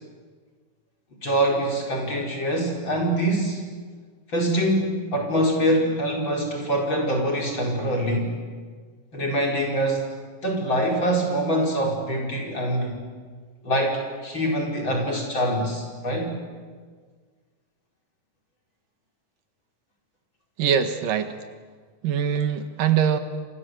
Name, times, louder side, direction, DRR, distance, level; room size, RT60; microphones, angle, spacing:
voice 1, 1.2-3.6 4.3-8.3 9.1-10.1 10.4-12.9 13.6-16.3, right 1 dB, 35° left, 0 dB, 5.4 m, -24 dB
voice 2, 20.6-21.3 22.0-23.2, right 8 dB, 80° right, 8 dB, 3.3 m, -22 dB
27.5 x 26.5 x 7.9 m, 1.5 s
omnidirectional pair, 3.8 m